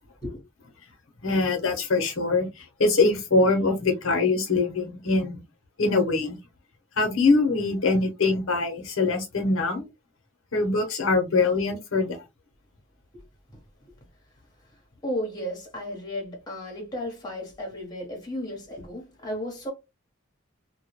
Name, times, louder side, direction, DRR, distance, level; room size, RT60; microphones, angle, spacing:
voice 1, 1.2-5.4 5.8-6.4 7.0-9.9 10.5-12.2, left 3 dB, 75° left, 0.7 m, -23 dB
voice 2, 15.0-19.7, left 1 dB, 20° left, 0.9 m, -34 dB
2.2 x 2.1 x 2.8 m
head